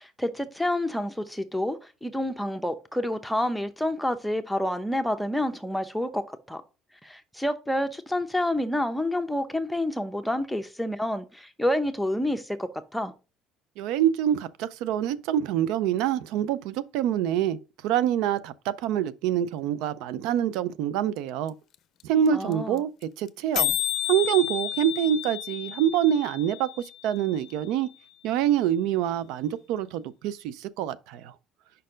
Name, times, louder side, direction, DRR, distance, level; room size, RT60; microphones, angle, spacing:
voice 1, 0.0-6.6 7.0-13.1 22.3-22.8, left 1 dB, 5° left, 0.8 m, -28 dB
voice 2, 13.8-17.6 17.8-21.5 22.0-22.9 23.2-23.7 24.1-26.7 27.0-27.9 28.2-31.3, right 10 dB, 85° right, 0.4 m, -26 dB
sound 1, 21.5-21.6 21.7-21.8 22.0-22.3 22.5-22.6 22.8-23.0 23.3-23.4 23.5-27.5, left 14 dB, 60° left, 0.5 m, -31 dB
5.2 x 4.3 x 5.0 m
cardioid pair, 105°, 0 cm